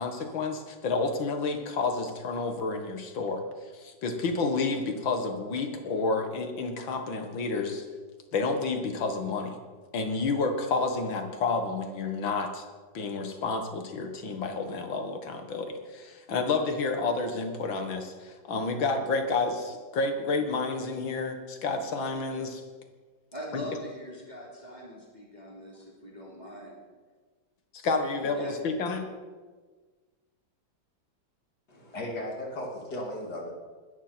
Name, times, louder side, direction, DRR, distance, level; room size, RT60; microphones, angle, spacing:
voice 1, 0.0-3.4 3.7-7.8 8.3-9.6 9.9-12.6 12.9-22.6 23.5-23.6 27.7-29.0, left 3 dB, 85° left, 6 dB, 2.4 m, -30 dB
voice 2, 23.3-26.8 28.2-28.6, equal, 20° right, -4 dB, 3.2 m, -42 dB
voice 3, 31.7-33.5, left 1 dB, 55° left, -2 dB, 3.7 m, -36 dB
20.5 x 13.0 x 4.5 m, 1.4 s
omnidirectional pair, 2.1 m